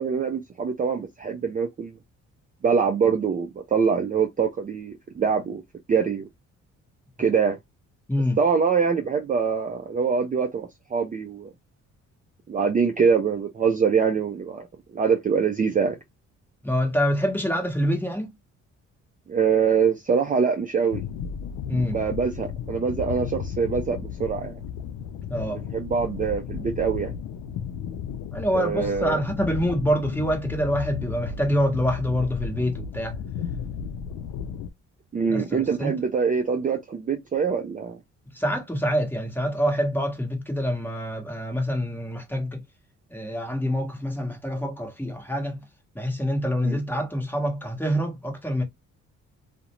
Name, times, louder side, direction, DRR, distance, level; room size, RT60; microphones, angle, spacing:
voice 1, 0.0-1.9 2.6-5.6 5.9-6.3 7.2-7.6 8.4-11.5 12.5-14.7 14.9-16.0 19.3-21.0 21.9-24.6 25.5-27.1 28.5-29.2 35.1-38.0 46.6-46.8, right 6 dB, 30° right, 0.4 m, -24 dB
voice 2, 16.6-18.3 21.7-22.0 25.3-25.6 28.3-33.1 35.3-35.9 38.3-42.6 43.1-45.6 45.9-48.6, equal, 5° left, 1.0 m, -26 dB
sound 1, 20.9-34.7, left 7 dB, 85° left, 0.5 m, -34 dB
2.4 x 2.1 x 2.9 m
cardioid pair, 90°, 30 cm